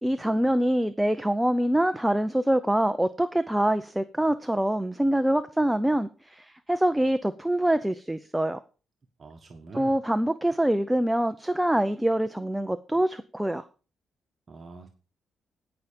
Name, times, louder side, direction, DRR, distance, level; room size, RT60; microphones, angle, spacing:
voice 1, 0.0-8.6 9.7-13.6, right 1 dB, 5° right, 10 dB, 0.7 m, -25 dB
voice 2, 9.2-9.9 14.5-14.9, right 3 dB, 40° right, 4 dB, 1.5 m, -44 dB
17.0 x 5.8 x 5.1 m, 0.34 s
cardioid pair, 100°, 0 cm